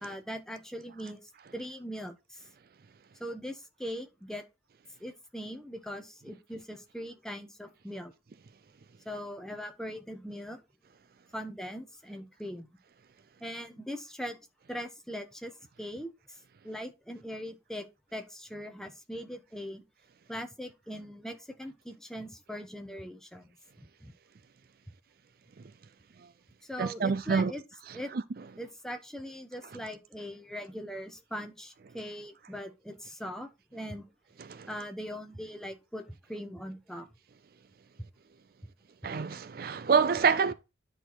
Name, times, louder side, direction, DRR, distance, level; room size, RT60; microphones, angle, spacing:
voice 1, 0.0-1.2 1.5-2.4 3.2-4.4 5.0-8.1 9.0-10.6 11.3-12.7 13.4-14.4 14.7-16.4 16.6-17.9 18.1-19.8 20.3-23.5 24.0-24.1 26.6-27.6 27.9-28.1 28.6-34.0 34.7-36.0 36.3-37.1, equal, 5° left, 1.0 m, -40 dB
voice 2, 26.8-27.5 27.9-28.2 34.4-34.7 39.0-40.5, right 5 dB, 50° right, 0.4 m, -27 dB
9.9 x 4.2 x 4.6 m
head